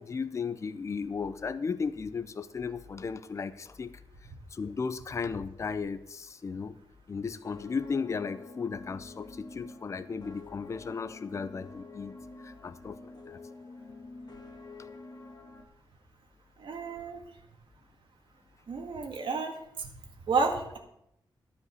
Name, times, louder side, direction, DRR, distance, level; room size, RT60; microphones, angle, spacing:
voice 1, 0.0-4.0 4.5-6.8 7.1-12.2 12.4-13.4 14.8-14.9, left 5 dB, 35° left, 13 dB, 0.5 m, -35 dB
sound 1, 7.2-15.6, left 3 dB, 55° left, 1.8 m, -48 dB
voice 2, 16.6-17.2 18.7-19.9 20.3-20.8, right 4 dB, 90° right, 2 dB, 1.9 m, -31 dB
12.5 x 5.2 x 7.9 m, 0.77 s
wide cardioid pair, 155°, 8 cm